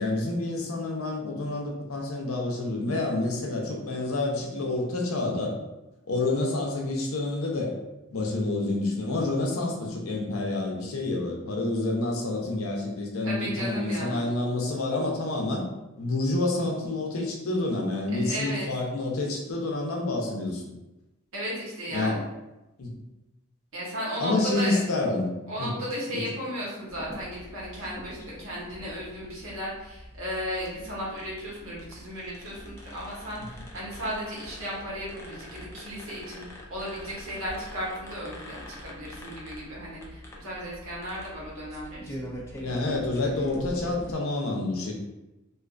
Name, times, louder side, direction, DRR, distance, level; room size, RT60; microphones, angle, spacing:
voice 1, 0.0-5.5 6.1-7.7 8.1-15.6 16.0-20.6 21.9-22.2 22.8-23.0 24.2-25.3 25.6-25.7 26.1-26.2 42.6-44.9, left 2 dB, 80° left, 0 dB, 0.6 m, -28 dB
voice 2, 13.2-14.2 18.1-18.7 21.3-22.2 23.7-24.8 25.5-42.3, equal, 70° right, -6 dB, 1.0 m, -35 dB
sound 1, 26.9-44.1, equal, 15° left, 0.3 m, -43 dB
2.5 x 2.3 x 2.4 m, 0.99 s
head